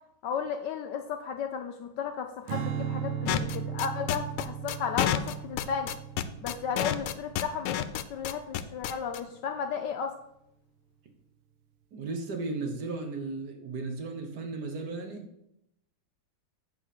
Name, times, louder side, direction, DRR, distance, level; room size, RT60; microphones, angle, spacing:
voice 1, 0.2-5.9 6.4-7.8 8.1-10.1, left 6 dB, 75° left, 6 dB, 1.1 m, -34 dB
Strum, 2.5-8.9, right 8 dB, 80° right, 1.5 m, -37 dB
sound 1, 3.3-9.2, left 12 dB, 90° left, 1.4 m, -29 dB
voice 2, 11.9-15.3, right 3 dB, 55° right, 5 dB, 1.5 m, -35 dB
8.5 x 4.3 x 6.5 m, 0.80 s
omnidirectional pair, 2.3 m